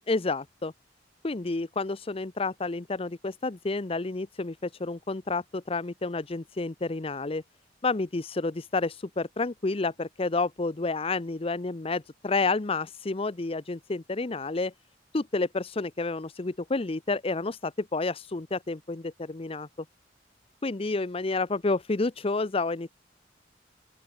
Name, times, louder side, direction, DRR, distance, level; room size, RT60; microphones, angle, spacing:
voice 1, 0.1-0.7 1.2-7.4 7.8-14.7 15.1-19.7 20.6-22.9, left 3 dB, 30° left, 0.7 m, -30 dB
open air
head